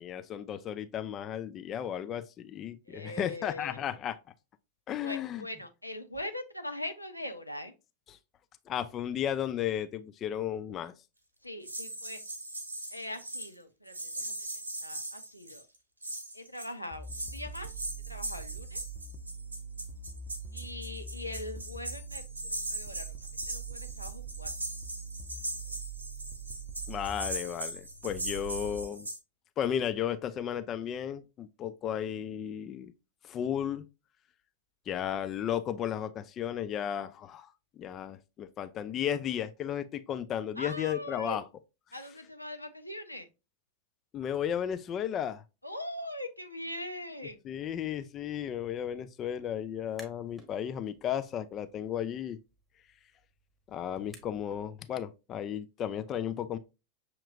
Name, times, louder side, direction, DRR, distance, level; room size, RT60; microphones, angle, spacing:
voice 1, 0.0-4.2 4.9-5.5 8.1-8.2 8.7-10.9 26.9-29.1 29.6-32.9 33.2-33.9 34.9-37.5 37.8-41.4 44.1-45.4 47.4-52.4 53.7-56.6, left 9 dB, 30° left, 0.4 m, -34 dB
voice 2, 2.9-3.8 4.9-7.7 11.4-12.2 12.9-14.3 14.8-15.6 16.3-17.8 18.1-18.8 20.5-22.2 22.7-23.2 23.5-24.5 40.6-41.4 41.9-43.3 45.6-47.4, left 1 dB, 90° left, 0.6 m, -41 dB
sound 1, 11.6-13.5 13.9-15.8 16.0-16.7 17.1-29.2, right 1 dB, 80° right, 1.0 m, -40 dB
sound 2, 16.9-28.8, right 5 dB, 30° right, 0.6 m, -43 dB
sound 3, 49.8-50.5 50.9-54.7, equal, 5° left, 1.2 m, -57 dB
6.4 x 2.9 x 2.4 m
figure-of-eight pair, 90°, 0 cm